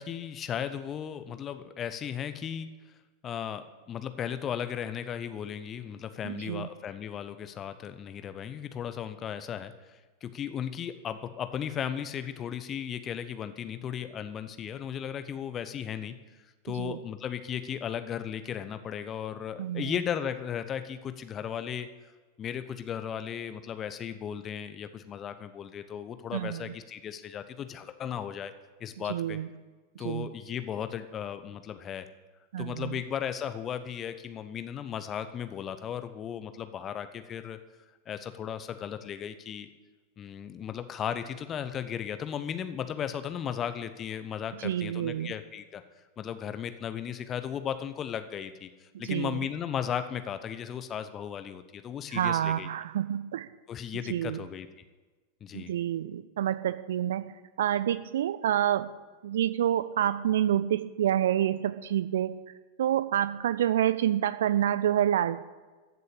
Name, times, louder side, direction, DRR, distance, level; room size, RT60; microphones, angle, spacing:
voice 1, 0.0-2.7 3.2-16.1 16.6-21.9 22.4-28.5 28.8-29.4 30.0-32.1 32.6-37.6 38.1-39.7 40.2-45.8 46.2-52.7 53.7-54.7 55.4-55.7, left 8 dB, 25° left, 11 dB, 0.9 m, -36 dB
voice 2, 6.2-6.7 16.7-17.0 19.6-19.9 26.3-26.7 29.1-29.5 30.0-30.3 32.5-33.0 44.6-45.3 49.0-49.4 52.1-53.5 54.1-54.4 55.5-57.2 57.6-58.9 59.2-62.4 62.8-65.4, right 11 dB, 60° right, 14 dB, 0.6 m, -28 dB
14.5 x 6.8 x 8.8 m, 1.3 s
figure-of-eight pair, 90°, 0 cm